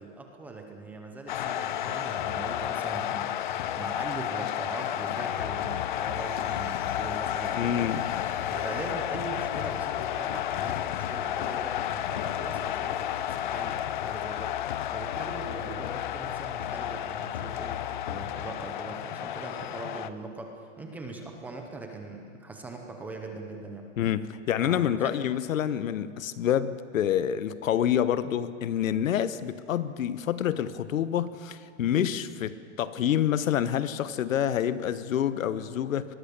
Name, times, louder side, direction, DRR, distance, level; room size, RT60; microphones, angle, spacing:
voice 1, 0.0-7.9 8.5-14.6 14.9-23.8 24.6-25.1, right 3 dB, 5° right, 3 dB, 0.6 m, -41 dB
sound 1, 1.3-20.1, left 11 dB, 40° left, 0.6 m, -31 dB
voice 2, 7.5-8.0 24.0-36.1, left 10 dB, 85° left, 14 dB, 1.2 m, -27 dB
24.0 x 20.5 x 6.8 m, 2.2 s
supercardioid pair, 175°, 39 cm